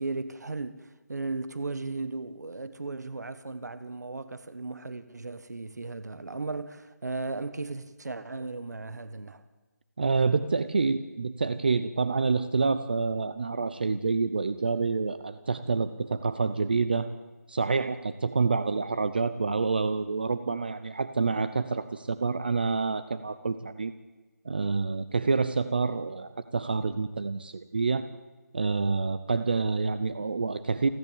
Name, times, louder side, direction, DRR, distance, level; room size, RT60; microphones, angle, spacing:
voice 1, 0.0-9.4, right 3 dB, 75° right, 1.5 m, -36 dB
voice 2, 10.0-17.1 17.5-23.9 24.4-28.1 28.5-30.9, right 4 dB, 35° right, 0.8 m, -27 dB
29.5 x 11.0 x 8.9 m
figure-of-eight pair, 175°, 9 cm